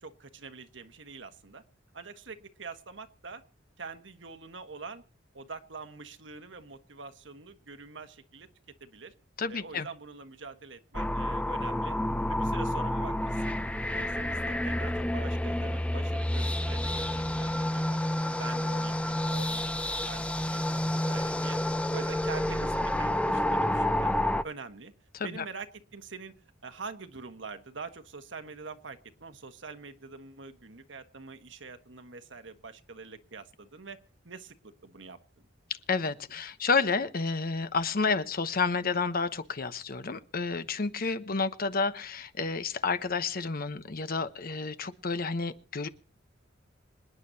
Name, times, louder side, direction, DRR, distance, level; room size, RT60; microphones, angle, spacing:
voice 1, 0.0-1.6 1.9-3.4 3.8-5.0 5.3-8.5 8.8-9.1 9.5-12.0 12.3-13.6 13.9-19.7 20.1-21.6 21.9-24.1 24.4-24.9 25.2-26.3 26.6-34.0 34.2-35.2, right 4 dB, 70° right, 8 dB, 1.4 m, -45 dB
voice 2, 9.4-9.9 25.1-25.4 35.9-45.9, left 4 dB, 50° left, 12 dB, 1.0 m, -30 dB
sound 1, 10.9-24.4, left 1 dB, 5° left, 0.6 m, -29 dB
26.5 x 9.7 x 2.8 m, 0.35 s
head